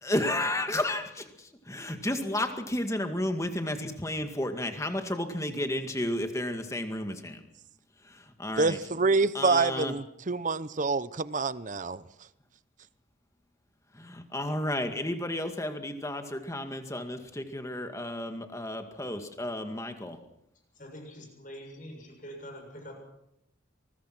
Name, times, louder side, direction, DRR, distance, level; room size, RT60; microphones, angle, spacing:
voice 1, 0.0-7.4 8.1-8.8 9.3-9.9 13.9-20.2, left 1 dB, 15° left, 6 dB, 2.1 m, -32 dB
voice 2, 8.6-12.0, right 3 dB, 40° right, 16 dB, 0.7 m, -27 dB
voice 3, 20.8-23.0, equal, 40° left, 2 dB, 7.1 m, -44 dB
24.5 x 20.5 x 6.1 m, 0.80 s
head